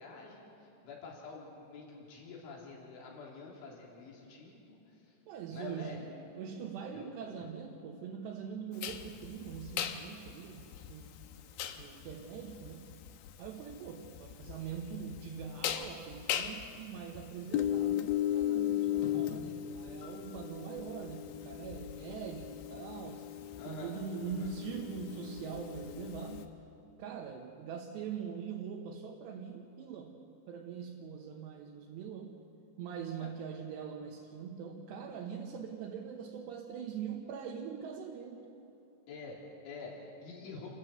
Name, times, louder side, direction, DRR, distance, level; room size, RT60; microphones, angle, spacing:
voice 1, 0.0-5.2 5.5-6.1 6.9-7.5 23.6-24.0 24.2-24.5 33.2-33.3 39.1-40.7, left 4 dB, 75° left, -3 dB, 5.7 m, -48 dB
voice 2, 5.3-11.1 11.8-12.9 13.4-23.2 23.7-26.5 27.0-30.2 30.5-32.4 32.8-38.4, right 7 dB, 70° right, 1 dB, 3.0 m, -43 dB
sound 1, 8.8-26.4, left 11 dB, 90° left, 2.1 m, -37 dB
28.5 x 13.5 x 7.8 m, 2.9 s
omnidirectional pair, 5.6 m